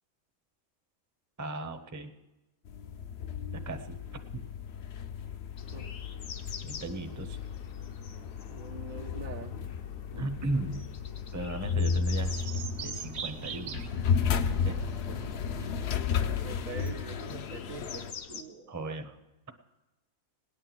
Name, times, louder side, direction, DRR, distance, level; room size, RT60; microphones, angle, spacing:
voice 1, 1.4-2.1 3.5-4.4 6.6-7.4 10.1-10.9 11.3-13.8 14.6-14.8 15.6-15.7 18.7-19.2, right 2 dB, 15° right, 7 dB, 0.7 m, -37 dB
sound 1, 2.7-18.1, left 6 dB, 60° left, 0.8 m, -33 dB
sound 2, 5.6-18.4, left 6 dB, 75° left, 1.4 m, -47 dB
voice 2, 8.5-9.6 16.2-19.0, right 4 dB, 80° right, 5 dB, 1.5 m, -44 dB
sound 3, 12.2-17.2, right 6 dB, 60° right, 0.9 m, -42 dB
18.0 x 9.7 x 5.9 m, 1.0 s
omnidirectional pair, 1.4 m